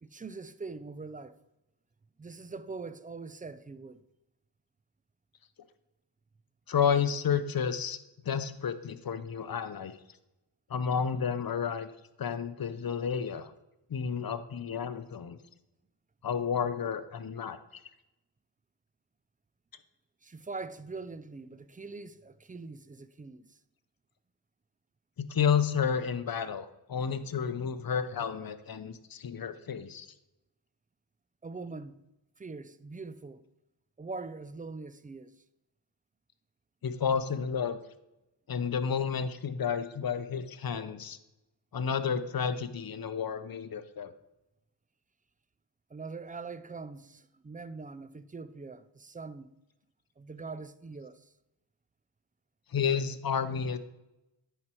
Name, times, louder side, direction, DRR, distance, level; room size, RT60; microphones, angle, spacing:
voice 1, 0.0-1.4 2.2-4.1 20.2-23.6 31.4-32.0 32.4-33.4 34.0-35.4 45.9-49.6 50.2-51.3, right 4 dB, 20° right, 0.4 m, -43 dB
voice 2, 6.7-8.0 8.2-10.0 10.7-11.9 12.2-13.5 13.9-15.4 16.2-17.8 25.2-30.1 36.8-37.8 38.5-41.2 41.7-44.1 52.7-53.8, left 7 dB, 50° left, 0.7 m, -31 dB
9.7 x 4.6 x 4.4 m
cardioid pair, 65°, 47 cm